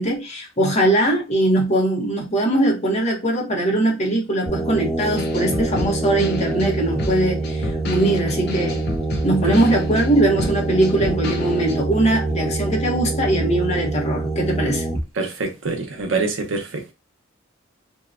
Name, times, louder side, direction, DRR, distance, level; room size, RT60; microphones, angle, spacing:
voice 1, 0.0-8.8 9.2-14.8, right 1 dB, 35° left, 0.8 m, -21 dB
sound 1, 4.5-15.0, right 2 dB, ahead, 0.4 m, -25 dB
sound 2, 5.2-11.7, left 3 dB, 55° left, 0.5 m, -31 dB
voice 2, 15.1-16.9, right 3 dB, 80° right, 0.7 m, -25 dB
2.7 x 2.2 x 2.4 m
head